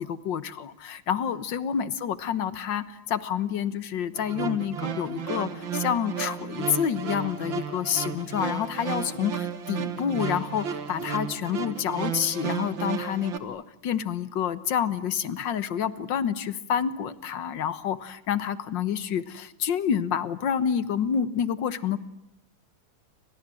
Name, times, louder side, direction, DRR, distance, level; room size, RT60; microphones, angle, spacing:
voice 1, 0.0-22.0, left 8 dB, 60° left, 14 dB, 1.8 m, -28 dB
sound 1, 4.1-13.4, right 7 dB, 60° right, 2.4 m, -33 dB
30.0 x 25.5 x 7.7 m, 0.84 s
omnidirectional pair, 2.4 m